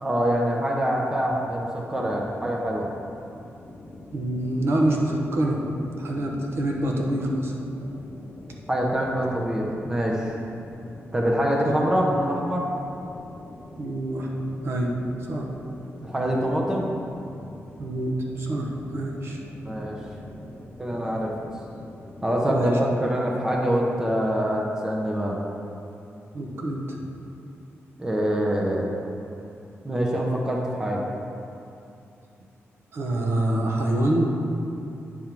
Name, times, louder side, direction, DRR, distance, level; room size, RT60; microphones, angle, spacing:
voice 1, 0.0-2.9 8.7-10.3 11.1-12.7 16.0-16.9 19.6-20.0 20.8-21.3 22.2-25.4 28.0-28.9 29.8-31.0, equal, 10° right, -2 dB, 0.7 m, -25 dB
sound 1, 3.1-22.7, left 1 dB, 30° left, 0.8 m, -44 dB
voice 2, 4.1-5.6 6.0-7.5 13.8-14.3 14.6-15.0 15.3-15.5 17.8-19.4 22.5-22.8 26.3-27.0 32.9-34.3, right 1 dB, 55° right, -1 dB, 0.9 m, -26 dB
8.7 x 3.6 x 5.9 m, 2.7 s
wide cardioid pair, 170°, 5 cm